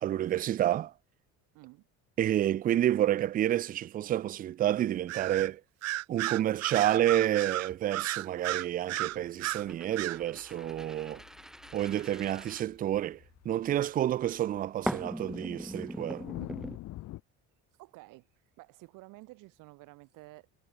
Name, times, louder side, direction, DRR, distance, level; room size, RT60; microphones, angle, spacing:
voice 1, 0.0-0.9 2.2-5.6 6.1-11.2 11.7-13.2 13.4-16.2, right 12 dB, 25° right, 0.4 m, -29 dB
voice 2, 1.5-1.9 17.8-18.3 18.6-20.5, right 22 dB, 75° right, 7.2 m, -51 dB
Bird vocalization bird call bird song, 5.1-5.5 5.8-9.6 10.0-10.2, right 16 dB, 50° right, 1.4 m, -33 dB
sound 1, 9.1-17.2, left 16 dB, 55° left, 4.9 m, -48 dB
sound 2, 9.6-13.3 14.9-16.8, equal, ahead, 1.3 m, -40 dB
cardioid pair, 160°, 32 cm